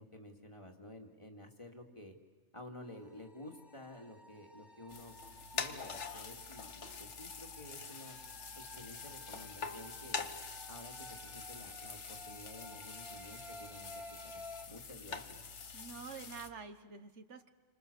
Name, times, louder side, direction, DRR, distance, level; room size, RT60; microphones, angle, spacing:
voice 1, 0.0-2.1 2.5-5.1 5.5-8.2 8.6-10.3 10.7-13.9 14.2-15.4, left 1 dB, 25° left, 3 dB, 2.4 m, -52 dB
sound 1, 2.8-14.7, left 1 dB, ahead, 2.2 m, -54 dB
sound 2, 4.9-16.5, left 5 dB, 70° left, 1.6 m, -45 dB
voice 2, 15.7-17.5, right 5 dB, 70° right, 9 dB, 1.5 m, -48 dB
29.5 x 25.5 x 6.9 m, 1.3 s
omnidirectional pair, 1.2 m